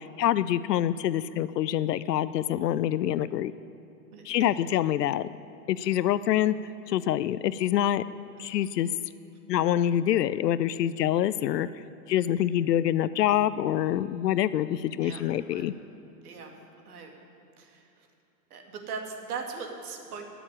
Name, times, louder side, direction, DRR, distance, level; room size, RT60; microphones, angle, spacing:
voice 1, 0.2-3.5 4.2-5.3 5.7-6.5 6.9-8.0 8.4-8.9 9.5-11.7 12.1-15.7, left 11 dB, 85° left, 15 dB, 0.6 m, -26 dB
voice 2, 4.1-4.5 5.8-5.9 8.3-8.4 15.0-15.2 15.5-15.7 16.2-16.5 16.9-17.1 17.6-17.8 18.5-20.3, right 5 dB, 65° right, 2 dB, 2.5 m, -39 dB
13.5 x 7.1 x 9.9 m, 2.6 s
hypercardioid pair, 135°, 47 cm